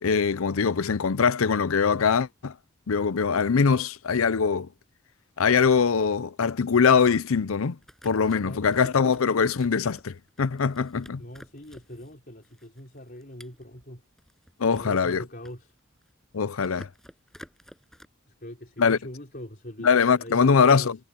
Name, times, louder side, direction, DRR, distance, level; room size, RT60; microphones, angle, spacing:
voice 1, 0.0-2.5 2.9-4.7 5.4-7.8 8.0-11.2 14.6-15.2 16.3-16.9 18.8-19.0 19.8-21.0, left 5 dB, 80° left, 0.6 m, -22 dB
sound 1, 7.8-12.2 12.4-15.0 15.3-16.3 16.6-18.1, equal, ahead, 6.9 m, -51 dB
voice 2, 8.4-8.7 11.2-14.0 14.7-15.7 18.4-19.9 20.1-20.9, left 1 dB, 45° left, 4.3 m, -42 dB
head